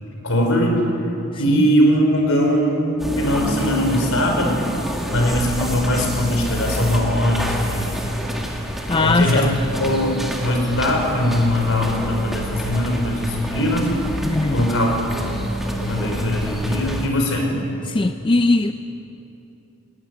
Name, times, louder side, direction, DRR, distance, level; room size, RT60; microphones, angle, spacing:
voice 1, 0.2-0.8 1.4-4.6 5.1-8.0 9.0-9.5 9.8-13.9 14.5-15.3 15.7-17.5, equal, 65° left, 1 dB, 5.0 m, -20 dB
sound 1, 3.0-17.1, equal, ahead, 2.0 m, -28 dB
voice 2, 8.9-9.5 14.2-14.7 17.9-18.7, left 2 dB, 20° left, 8 dB, 0.4 m, -19 dB
19.5 x 18.5 x 9.6 m, 2.9 s
head